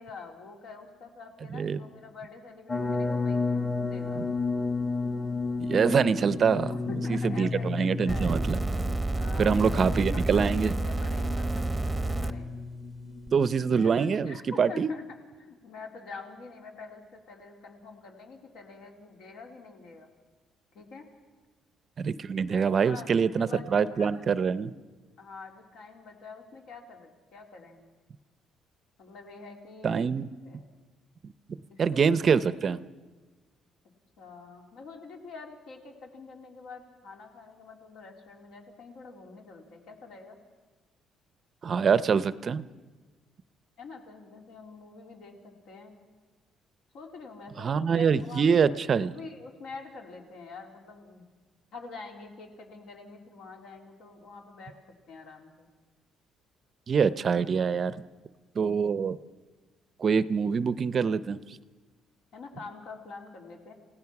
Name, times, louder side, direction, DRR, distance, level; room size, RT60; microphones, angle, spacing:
voice 1, 0.0-3.4 3.7-4.2 6.6-8.4 9.2-12.5 13.5-15.0 15.4-20.1 20.7-21.0 22.5-24.2 25.2-27.8 29.0-30.1 30.4-30.7 31.7-32.5 34.2-40.4 43.8-45.9 46.9-48.8 49.1-51.2 51.7-54.7 55.1-55.7 62.3-63.7, left 4 dB, 70° left, 2 dB, 3.4 m, -46 dB
sound 1, 2.7-13.6, left 3 dB, 20° left, 1.3 m, -32 dB
voice 2, 5.6-6.7 7.1-8.6 9.4-10.8 13.3-14.9 22.0-24.7 29.8-30.3 31.8-32.8 41.6-42.7 47.6-49.2 56.9-58.0 58.6-59.2 60.0-61.4, right 6 dB, 35° right, 15 dB, 0.6 m, -25 dB
sound 2, 8.1-12.3 13.3-13.4, right 2 dB, 10° right, 0.9 m, -29 dB
29.0 x 17.0 x 5.9 m, 1.3 s
cardioid pair, 140°, 0 cm